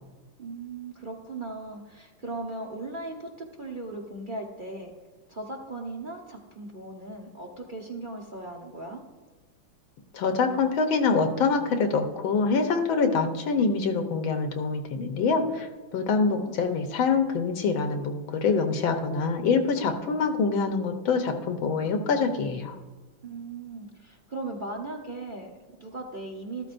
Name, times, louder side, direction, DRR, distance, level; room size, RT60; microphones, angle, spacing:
voice 1, 0.4-4.9 5.3-9.0 16.0-16.6 23.2-26.7, right 2 dB, 40° right, 1 dB, 0.7 m, -38 dB
voice 2, 10.1-22.7, left 4 dB, 75° left, 5 dB, 1.7 m, -25 dB
13.0 x 13.0 x 2.6 m, 1.2 s
omnidirectional pair, 2.3 m